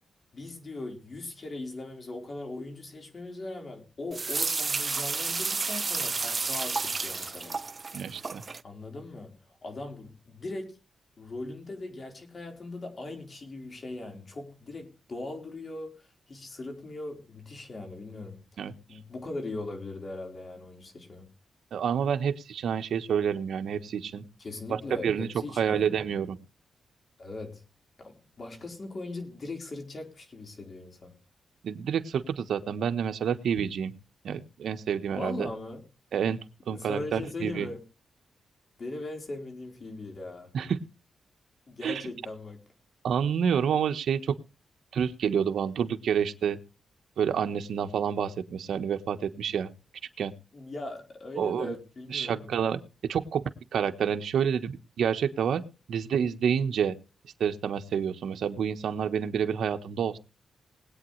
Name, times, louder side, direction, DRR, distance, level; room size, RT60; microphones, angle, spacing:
voice 1, 0.3-7.6 8.6-9.3 9.6-10.8 11.2-18.4 18.9-21.3 24.4-26.0 27.2-27.6 28.0-31.1 35.1-35.8 36.7-37.8 38.8-40.5 41.7-42.6 50.5-52.5, left 2 dB, 40° left, 4.3 m, -39 dB
sound 1, 4.1-8.6, right 4 dB, 35° right, 0.6 m, -31 dB
voice 2, 7.9-8.4 18.6-18.7 21.7-24.2 24.7-25.3 25.6-26.4 31.6-33.9 34.2-35.5 36.1-36.4 36.7-37.7 40.5-40.8 41.8-42.0 43.0-44.4 44.9-46.6 47.2-49.7 50.2-50.3 51.4-51.7 52.1-53.4 53.7-55.6 55.9-57.0 57.4-60.2, right 7 dB, 80° right, 1.2 m, -28 dB
21.0 x 8.9 x 3.2 m
cardioid pair, 100°, 0 cm